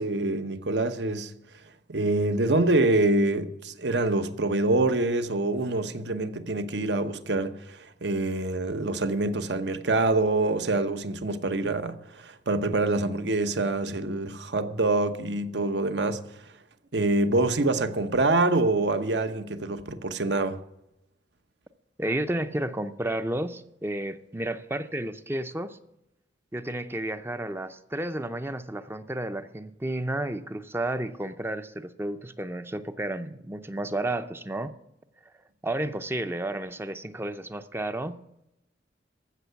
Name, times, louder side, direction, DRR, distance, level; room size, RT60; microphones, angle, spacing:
voice 1, 0.0-1.3 1.9-16.2 16.9-20.6, right 2 dB, 65° right, 1.0 m, -25 dB
voice 2, 22.0-25.8 26.5-34.7 35.6-38.2, right 1 dB, 15° right, 0.6 m, -32 dB
15.0 x 6.6 x 8.2 m
head